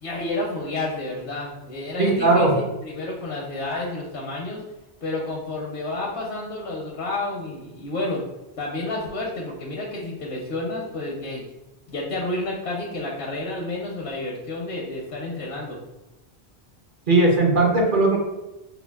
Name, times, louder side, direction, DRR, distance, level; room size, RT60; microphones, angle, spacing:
voice 1, 0.0-4.6 5.0-8.2 8.6-11.5 11.9-15.8, left 2 dB, 75° left, -3 dB, 1.0 m, -30 dB
voice 2, 2.0-2.5 17.1-18.2, right 2 dB, 55° right, -1 dB, 0.9 m, -18 dB
4.8 x 2.3 x 2.3 m, 1.0 s
omnidirectional pair, 1.1 m